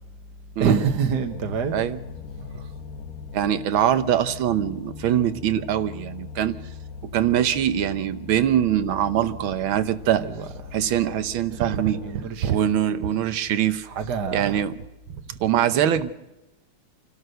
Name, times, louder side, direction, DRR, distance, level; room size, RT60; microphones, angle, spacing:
voice 1, 0.6-1.8 10.2-10.8 11.9-12.7 13.8-14.6, right 6 dB, 55° right, 5 dB, 1.7 m, -26 dB
sound 1, 1.1-12.4, left 6 dB, 55° left, 1.3 m, -40 dB
voice 2, 3.3-6.6 7.0-10.2 10.7-12.0 12.4-13.9 14.3-14.7 15.3-16.1, right 10 dB, 75° right, 12 dB, 1.7 m, -23 dB
27.5 x 12.5 x 7.9 m, 1.0 s
omnidirectional pair, 2.3 m